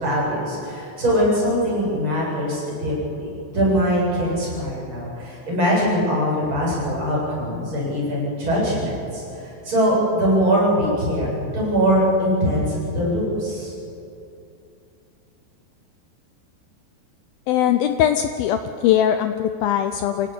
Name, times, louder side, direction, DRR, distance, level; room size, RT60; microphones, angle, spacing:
voice 1, 0.0-13.7, equal, 25° right, -5 dB, 8.6 m, -22 dB
voice 2, 17.5-20.3, left 10 dB, 85° left, 8 dB, 2.1 m, -20 dB
27.0 x 17.0 x 8.6 m, 2.7 s
omnidirectional pair, 5.1 m